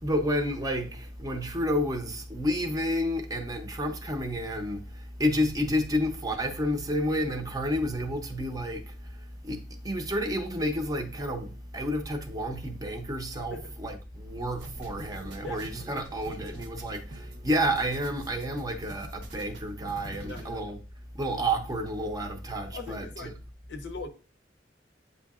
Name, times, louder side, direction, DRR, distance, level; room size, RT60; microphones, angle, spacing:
voice 1, 0.0-20.8 21.1-23.3, equal, 20° right, 0.6 m, -30 dB
sound 1, 14.6-20.4, right 2 dB, 80° right, 0.8 m, -47 dB
voice 2, 20.2-20.6 22.7-23.3 23.7-24.1, left 3 dB, 75° left, 0.6 m, -40 dB
8.1 x 2.7 x 2.3 m
head